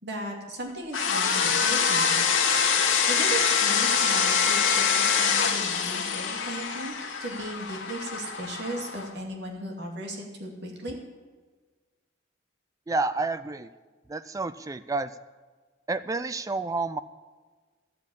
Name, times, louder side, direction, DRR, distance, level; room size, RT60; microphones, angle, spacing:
voice 1, 0.0-2.2 3.0-6.9 7.2-11.0, right 1 dB, 55° right, 0 dB, 2.5 m, -36 dB
sound 1, 0.9-9.1, left 6 dB, 75° left, 1.5 m, -25 dB
voice 2, 12.9-13.7 14.1-15.1 15.9-17.0, right 3 dB, 15° right, 14 dB, 0.3 m, -29 dB
12.0 x 8.3 x 8.4 m, 1.4 s
head